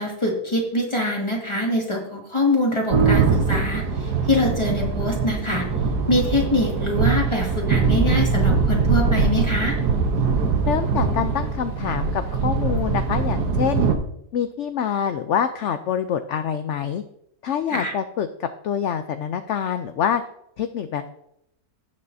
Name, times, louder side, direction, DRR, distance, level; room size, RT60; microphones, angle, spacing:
voice 1, 0.0-5.7 6.1-9.8 17.7-17.9, left 1 dB, 20° left, -1 dB, 2.1 m, -24 dB
sound 1, 2.9-13.9, right 4 dB, 90° right, 1.6 m, -22 dB
voice 2, 10.7-13.8 14.3-17.0 17.4-20.2 20.6-21.1, left 8 dB, 65° left, 9 dB, 0.7 m, -26 dB
17.5 x 6.4 x 2.7 m, 0.76 s
omnidirectional pair, 1.7 m